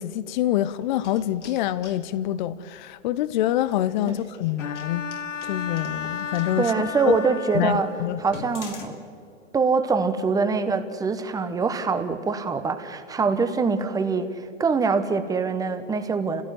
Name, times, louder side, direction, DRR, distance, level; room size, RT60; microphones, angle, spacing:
voice 1, 0.0-5.1 5.4-6.7 7.1-7.2 7.5-8.2, left 13 dB, 40° left, 0.7 m, -26 dB
sound 1, 0.8-2.0 3.6-6.5 7.1-7.2 7.7-7.8 8.2-8.9, left 5 dB, 75° left, 3.0 m, -43 dB
Bowed string instrument, 4.6-8.3, left 6 dB, 90° left, 0.8 m, -34 dB
voice 2, 6.6-7.9 8.2-9.0 9.5-14.3 14.6-16.4, right 4 dB, 10° right, 1.1 m, -24 dB
29.0 x 16.5 x 7.7 m
hypercardioid pair, 120°, 37 cm